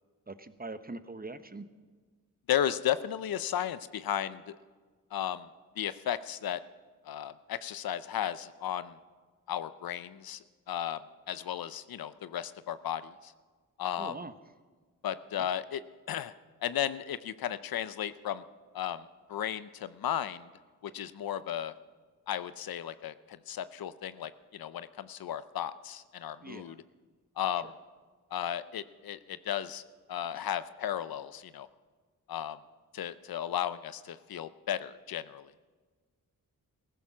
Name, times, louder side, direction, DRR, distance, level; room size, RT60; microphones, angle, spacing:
voice 1, 0.3-1.6 14.0-14.3 15.3-15.5 26.4-26.8 30.3-30.5, right 3 dB, 25° right, 11 dB, 1.0 m, -43 dB
voice 2, 2.5-4.6 5.1-5.5 5.8-6.6 7.0-9.0 9.5-11.0 11.3-13.3 13.8-14.2 15.0-16.3 16.6-18.4 18.7-20.5 20.8-21.7 22.3-26.8 27.4-27.7 28.3-29.8 30.1-31.7 32.3-32.6 32.9-35.5, left 10 dB, 80° left, 15 dB, 0.6 m, -34 dB
15.5 x 14.0 x 6.0 m, 1.4 s
cardioid pair, 45°, 35 cm